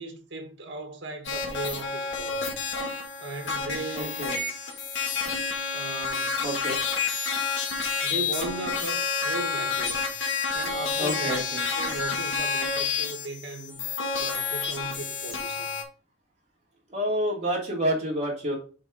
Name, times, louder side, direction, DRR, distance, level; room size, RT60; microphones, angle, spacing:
voice 1, 0.0-2.5 3.2-4.3 5.7-6.3 8.0-10.1 10.5-11.5 11.7-13.8 14.2-15.7, right 2 dB, 75° right, 1.6 m, -37 dB
sound 1, 1.2-15.8, left 5 dB, 75° left, 2.1 m, -29 dB
voice 2, 3.9-4.4 6.4-6.7 11.0-11.6 16.9-18.6, equal, 35° right, 3.0 m, -28 dB
6.8 x 4.6 x 5.0 m
head